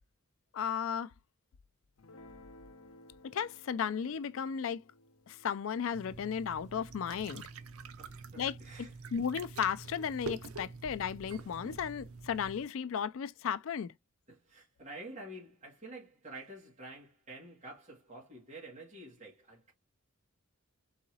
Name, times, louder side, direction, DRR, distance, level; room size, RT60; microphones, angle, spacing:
voice 1, 0.5-1.1 3.2-4.8 5.3-7.5 8.4-8.6 9.1-13.9, left 7 dB, 65° left, 0.4 m, -35 dB
Guitar, 2.0-8.6, left 1 dB, 80° left, 0.7 m, -59 dB
sound 1, 5.9-12.6, right 4 dB, 80° right, 0.6 m, -46 dB
voice 2, 8.0-8.9 14.3-19.7, right 2 dB, 30° right, 1.8 m, -49 dB
4.0 x 3.7 x 2.8 m
head